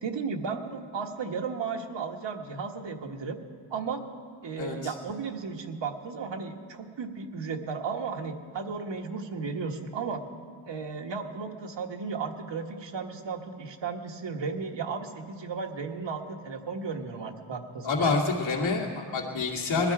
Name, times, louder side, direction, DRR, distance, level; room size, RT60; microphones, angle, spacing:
voice 1, 0.0-3.4 3.7-4.0 4.4-10.2 10.7-18.2, right 5 dB, 65° right, 4 dB, 1.5 m, -34 dB
voice 2, 4.6-4.9 17.8-19.9, left 4 dB, 75° left, -3 dB, 2.3 m, -27 dB
21.0 x 13.0 x 4.9 m, 2.1 s
wide cardioid pair, 105°, 47 cm